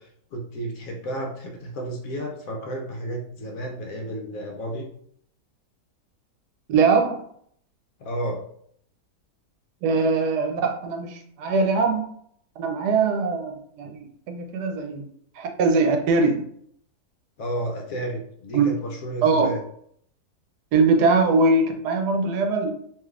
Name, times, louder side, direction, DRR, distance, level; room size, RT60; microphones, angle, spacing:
voice 1, 0.0-4.9 8.0-8.4 17.4-19.6, right 1 dB, 65° left, 1 dB, 1.0 m, -32 dB
voice 2, 6.7-7.2 9.8-12.1 12.6-14.0 14.3-15.0 15.4-16.4 18.5-18.6 19.2-19.5 20.7-22.7, right 4 dB, 80° right, 3 dB, 1.2 m, -21 dB
3.4 x 2.9 x 2.3 m, 0.66 s
omnidirectional pair, 1.7 m